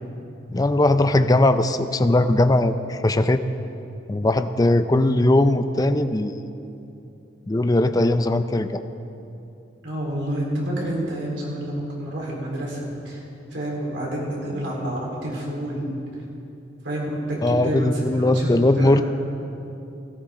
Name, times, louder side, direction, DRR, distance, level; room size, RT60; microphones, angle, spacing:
voice 1, 0.5-3.4 4.1-6.4 7.5-8.8 17.4-19.0, left 1 dB, 20° left, 10 dB, 0.4 m, -19 dB
voice 2, 9.8-13.2 13.5-15.8 16.8-18.5 18.8-19.0, right 1 dB, 80° right, -4 dB, 3.8 m, -28 dB
17.0 x 14.0 x 3.8 m, 2.8 s
head